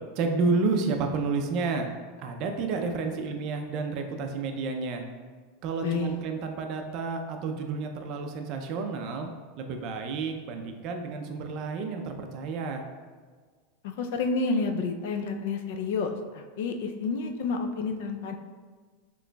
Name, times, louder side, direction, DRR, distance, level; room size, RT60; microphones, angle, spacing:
voice 1, 0.2-1.9 2.2-5.0 5.6-9.3 9.6-12.9, right 4 dB, 35° right, 4 dB, 0.4 m, -30 dB
voice 2, 5.8-6.2 13.8-18.3, left 4 dB, 60° left, 5 dB, 0.4 m, -30 dB
6.2 x 3.0 x 2.2 m, 1.5 s
supercardioid pair, 175°, 0 cm